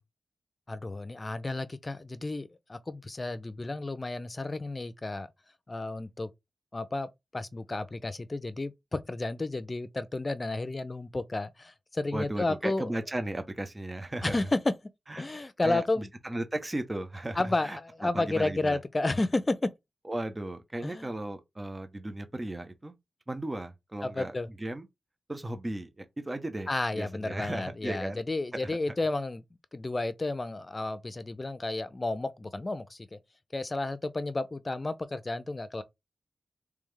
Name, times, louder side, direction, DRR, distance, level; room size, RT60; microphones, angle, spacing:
voice 1, 0.7-5.3 5.7-6.3 6.7-13.0 14.2-14.7 15.2-16.1 17.3-19.7 20.8-21.1 24.0-24.5 26.7-29.4 29.7-33.2 33.5-35.8, left 2 dB, 40° left, 0.6 m, -32 dB
voice 2, 12.1-14.4 15.1-15.3 15.6-18.8 20.1-22.9 23.3-24.3 24.6-24.9 25.3-28.2 28.6-28.8, right 1 dB, 30° right, 0.9 m, -36 dB
3.5 x 3.4 x 3.3 m
cardioid pair, 45°, 0 cm